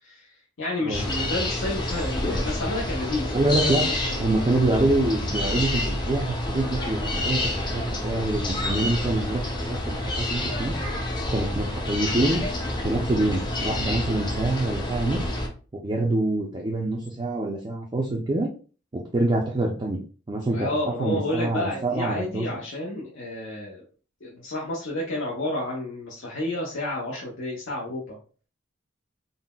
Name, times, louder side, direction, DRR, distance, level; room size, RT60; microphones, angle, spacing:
voice 1, 0.0-4.5 10.0-10.1 20.5-23.8 24.2-28.2, left 1 dB, 75° left, -4 dB, 0.7 m, -31 dB
sound 1, 0.9-15.5, left 1 dB, 25° left, 0.5 m, -28 dB
voice 2, 3.3-3.9 4.2-9.4 9.7-10.8 11.3-12.4 12.8-15.3 15.8-18.5 18.9-20.0 20.3-20.7 21.0-22.5, right 2 dB, 25° right, -1 dB, 0.4 m, -26 dB
3.8 x 2.0 x 2.2 m, 0.38 s
head